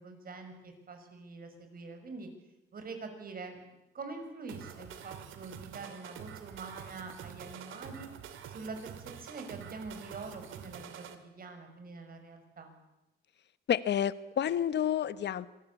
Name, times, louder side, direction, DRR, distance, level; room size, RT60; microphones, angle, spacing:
voice 1, 0.0-2.3 2.7-3.6 3.9-8.1 8.4-12.7, right 3 dB, 45° right, 6 dB, 6.1 m, -45 dB
sound 1, 4.5-11.1, right 9 dB, 80° right, 2.6 m, -47 dB
voice 2, 13.7-15.5, left 9 dB, 60° left, 15 dB, 1.2 m, -29 dB
25.5 x 18.5 x 8.5 m, 0.96 s
cardioid pair, 90°, 20 cm